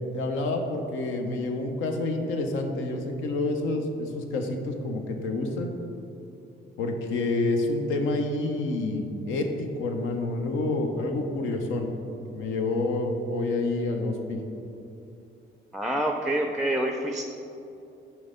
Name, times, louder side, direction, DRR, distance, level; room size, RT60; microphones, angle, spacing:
voice 1, 0.1-5.7 6.8-11.9 12.3-14.4, left 2 dB, 85° left, 3 dB, 0.8 m, -28 dB
voice 2, 15.7-17.2, right 1 dB, ahead, 4 dB, 0.4 m, -27 dB
6.2 x 4.2 x 5.0 m, 2.8 s
cardioid pair, 90°, 20 cm